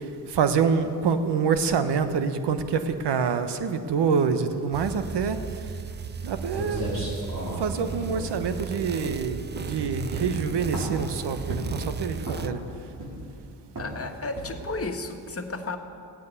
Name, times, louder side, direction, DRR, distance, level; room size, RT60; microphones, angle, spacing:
voice 1, 0.0-5.7 6.2-6.9 7.2-12.6, right 6 dB, 70° right, 10 dB, 1.2 m, -26 dB
sound 1, 4.7-12.5, right 5 dB, 25° right, 0.5 m, -36 dB
sound 2, 6.2-6.3 6.5-9.1 9.5-9.8 10.1-11.1 11.5-11.9 12.2-12.6 13.0-13.4 13.8-14.0 14.4-14.7, right 1 dB, 50° right, 5.0 m, -34 dB
voice 2, 13.8-15.8, left 3 dB, 35° left, 4 dB, 1.7 m, -33 dB
16.0 x 9.5 x 8.3 m, 2.5 s
cardioid pair, 60°, 42 cm